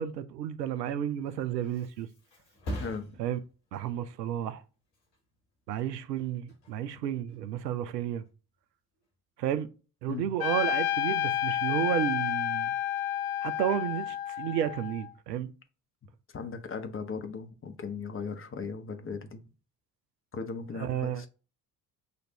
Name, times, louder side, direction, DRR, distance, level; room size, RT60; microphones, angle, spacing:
voice 1, 0.0-2.1 3.2-3.4 3.7-4.6 5.7-8.2 9.4-9.7 10.0-12.7 13.4-15.5 20.7-21.2, right 10 dB, 80° right, 0.6 m, -32 dB
Thump thud, 1.2-8.5 8.9-9.4, equal, 70° left, 2.0 m, -45 dB
voice 2, 2.8-3.2 10.1-10.3 16.3-19.4 20.3-21.3, left 5 dB, 25° left, 0.9 m, -38 dB
Trumpet, 10.4-15.1, left 11 dB, 50° left, 0.6 m, -30 dB
6.5 x 2.5 x 2.8 m
figure-of-eight pair, 50°, 49 cm